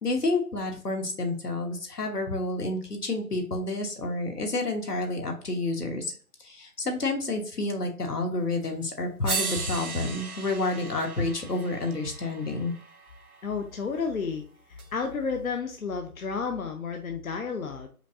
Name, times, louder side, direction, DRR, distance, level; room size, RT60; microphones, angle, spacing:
voice 1, 0.0-6.1 6.4-12.7, left 2 dB, 85° left, 3 dB, 1.4 m, -29 dB
sound 1, 8.6-8.7 9.2-13.4 14.8-14.9, right 4 dB, 70° right, 0.9 m, -36 dB
voice 2, 13.4-14.4 14.7-17.9, left 5 dB, 65° left, 4 dB, 0.7 m, -31 dB
5.1 x 2.6 x 2.6 m, 0.43 s
figure-of-eight pair, 165°, 45 cm